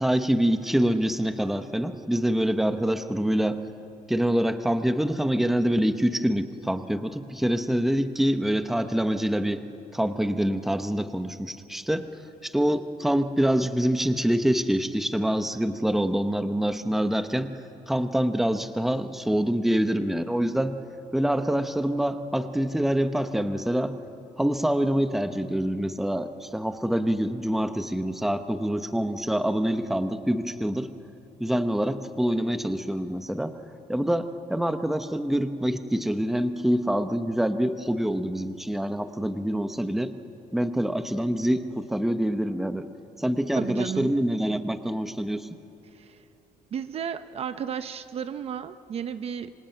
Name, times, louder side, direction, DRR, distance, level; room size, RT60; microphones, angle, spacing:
voice 1, 0.0-3.6 4.1-9.6 9.9-12.1 12.4-17.6 17.9-20.8 21.1-24.0 24.4-30.9 31.4-33.6 33.9-40.1 40.5-42.9 43.2-45.5, equal, ahead, 9 dB, 0.9 m, -25 dB
voice 2, 43.5-44.2 45.9-46.2 46.7-49.5, right 8 dB, 40° right, 11 dB, 0.7 m, -33 dB
26.5 x 25.0 x 9.0 m, 2.7 s
cardioid pair, 175°, 15 cm